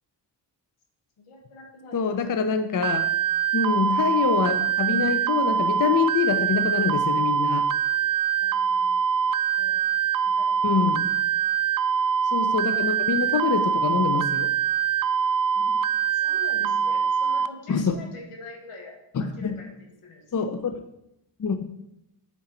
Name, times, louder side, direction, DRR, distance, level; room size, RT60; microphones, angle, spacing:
voice 1, 1.2-2.0 8.4-9.3 9.6-9.8 10.2-10.6 10.9-11.1 12.1-12.2 15.5-15.8 16.1-20.5, left 3 dB, 80° left, 1 dB, 1.6 m, -45 dB
voice 2, 1.9-3.1 3.5-7.8 10.6-11.1 12.3-14.5 17.7-17.9 19.1-19.6 20.3-20.8 21.4-21.7, left 6 dB, 40° left, 7 dB, 0.6 m, -25 dB
sound 1, 2.8-17.5, right 7 dB, 45° right, 0.4 m, -24 dB
7.8 x 4.5 x 4.4 m, 0.84 s
cardioid pair, 60°, 49 cm